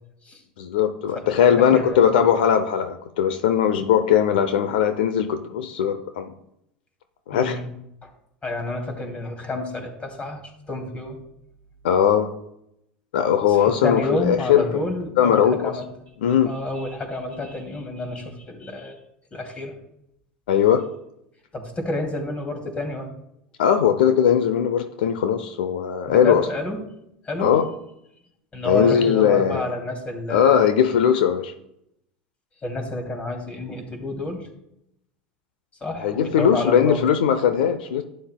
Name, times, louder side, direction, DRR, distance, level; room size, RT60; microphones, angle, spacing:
voice 1, 0.6-6.3 7.3-7.6 11.8-12.3 13.1-14.8 15.2-15.7 16.2-16.5 20.5-20.8 23.6-26.4 27.4-27.6 28.6-29.6 30.3-31.5 36.0-38.0, left 8 dB, 80° left, 9 dB, 0.6 m, -19 dB
voice 2, 1.5-2.0 7.3-7.7 8.0-8.1 8.4-10.4 10.7-11.2 13.5-15.9 16.5-19.0 19.3-19.8 21.5-23.1 26.1-26.8 27.2-27.5 28.5-30.6 32.6-34.5 35.8-37.0, left 2 dB, 25° left, 3 dB, 2.5 m, -29 dB
11.5 x 9.4 x 2.2 m, 0.79 s
hypercardioid pair, 90°, 5 cm